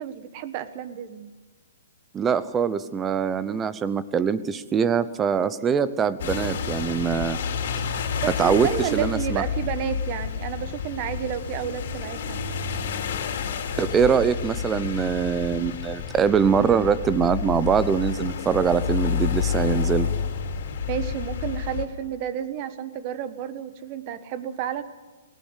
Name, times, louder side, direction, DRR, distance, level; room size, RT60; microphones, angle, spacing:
voice 1, 0.0-1.3 8.2-12.4 20.8-24.8, right 9 dB, 30° right, 12 dB, 1.3 m, -31 dB
voice 2, 2.1-7.4 8.3-9.4 13.8-20.1, right 7 dB, 10° right, 15 dB, 0.7 m, -23 dB
sound 1, 6.2-21.8, left 7 dB, 55° left, 3.3 m, -29 dB
19.5 x 18.0 x 8.2 m, 1.2 s
hypercardioid pair, 165°, 0 cm